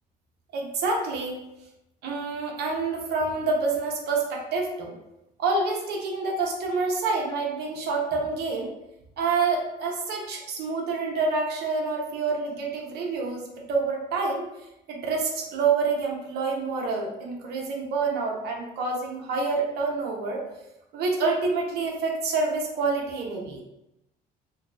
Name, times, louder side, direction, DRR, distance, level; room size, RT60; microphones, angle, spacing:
voice 1, 0.5-1.3 2.0-4.9 5.4-8.7 9.2-13.4 13.7-14.5 14.9-20.4 20.9-23.6, right 4 dB, 75° right, 0 dB, 0.8 m, -27 dB
2.8 x 2.3 x 3.6 m, 0.88 s
cardioid pair, 110°, 17 cm